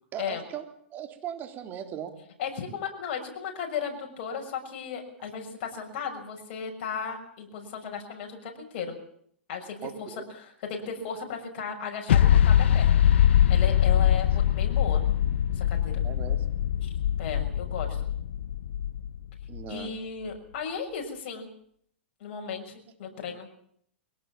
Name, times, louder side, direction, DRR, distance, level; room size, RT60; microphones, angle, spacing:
voice 1, 0.1-0.6 0.9-2.2 5.2-5.3 9.8-10.2 16.0-16.5 19.5-19.9, right 10 dB, 30° right, 5 dB, 3.7 m, -38 dB
voice 2, 2.4-9.0 9.5-13.0 13.5-15.0 15.5-16.0 16.8-16.9 17.2-18.0 19.7-21.5 22.2-23.5, left 6 dB, 55° left, 3 dB, 6.5 m, -35 dB
sound 1, 12.1-19.6, left 10 dB, 75° left, 1.0 m, -22 dB
22.5 x 18.0 x 7.5 m, 0.65 s
hypercardioid pair, 130°, 6 cm